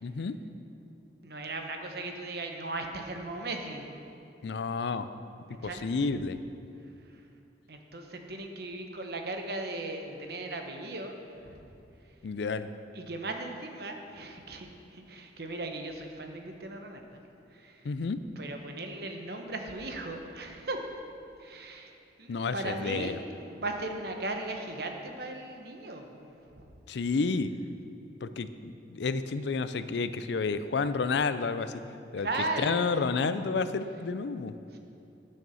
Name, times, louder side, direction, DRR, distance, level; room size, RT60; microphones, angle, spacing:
voice 1, 0.0-0.4 4.4-5.1 5.6-6.4 12.2-12.7 17.8-18.2 22.3-23.2 26.9-27.5 28.2-31.8 32.1-32.3 32.6-34.5, left 4 dB, 65° left, 12 dB, 0.4 m, -30 dB
voice 2, 1.2-3.9 5.5-5.9 7.7-11.7 12.9-17.2 17.5-17.8 18.4-20.8 21.4-21.9 22.2-23.2 23.5-26.7 32.2-32.9 34.7-34.8, right 2 dB, 55° right, 4 dB, 1.0 m, -37 dB
9.1 x 6.6 x 7.0 m, 2.7 s
head